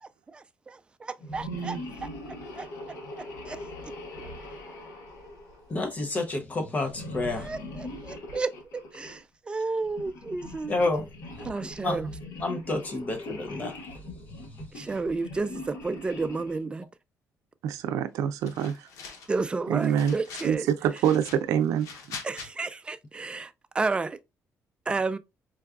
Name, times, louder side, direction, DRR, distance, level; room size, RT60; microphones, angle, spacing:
voice 1, 0.3-2.7 3.2-3.6 7.3-10.7 11.4-12.1 14.7-16.9 19.3-20.7 22.2-24.2 24.9-25.2, right 3 dB, 20° right, 0.3 m, -32 dB
sound 1, 1.2-6.0 6.9-9.2 9.8-16.7, left 1 dB, 65° left, 1.2 m, -41 dB
voice 2, 1.5-1.8 17.6-18.9 19.7-20.2 20.4-22.2, right 9 dB, 85° right, 0.4 m, -26 dB
voice 3, 5.7-7.5 10.7-11.1 11.8-12.0 12.4-13.7, left 2 dB, 30° left, 0.7 m, -29 dB
sound 2, 18.4-19.4 19.8-20.6 20.9-22.5, left 5 dB, 85° left, 0.8 m, -43 dB
4.6 x 2.3 x 2.3 m
cardioid pair, 120°, 5 cm